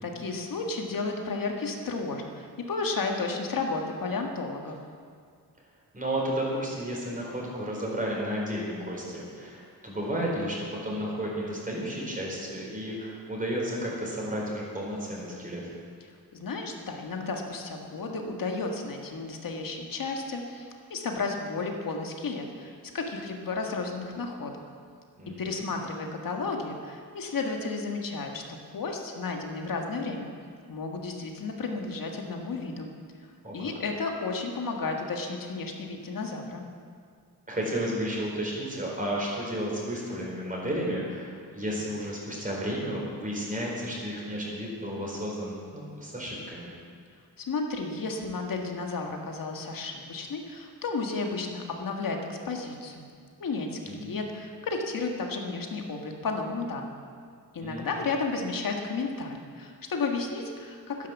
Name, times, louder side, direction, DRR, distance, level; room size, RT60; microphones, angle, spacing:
voice 1, 0.0-4.8 16.0-16.1 16.4-24.5 25.4-28.4 28.7-30.3 30.7-32.9 33.5-36.6 47.5-53.1 53.4-57.0 57.5-61.1, left 3 dB, 60° left, 2 dB, 1.8 m, -33 dB
voice 2, 5.9-15.7 25.2-25.7 33.4-33.5 37.5-46.7 53.8-54.1 57.6-57.9, equal, 20° right, -3 dB, 4.2 m, -32 dB
12.5 x 10.5 x 7.2 m, 2.1 s
wide cardioid pair, 125°, 37 cm